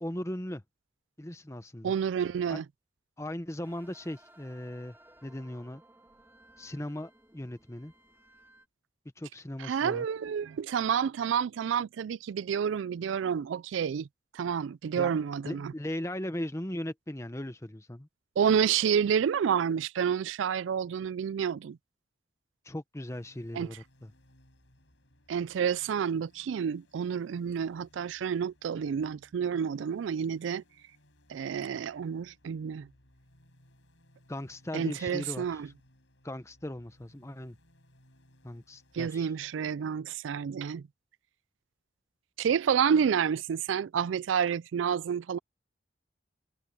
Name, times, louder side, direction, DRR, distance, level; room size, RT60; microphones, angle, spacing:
voice 1, 0.0-0.6 1.2-1.9 2.5-2.6 3.2-5.0 5.2-5.8 6.6-7.9 9.2-10.0 14.9-18.1 22.6-24.1 34.3-35.6 36.2-37.6 38.4-39.3, left 1 dB, 15° left, 1.0 m, -38 dB
voice 2, 1.8-2.6 9.6-14.1 14.3-15.7 18.4-21.8 23.5-23.8 25.3-30.6 31.3-32.9 34.7-35.7 38.9-40.9 42.4-45.4, right 7 dB, 85° right, 0.3 m, -29 dB
sound 1, 3.6-8.7, right 1 dB, 10° right, 2.2 m, -59 dB
sound 2, 23.0-39.1, left 1 dB, 80° left, 6.2 m, -63 dB
head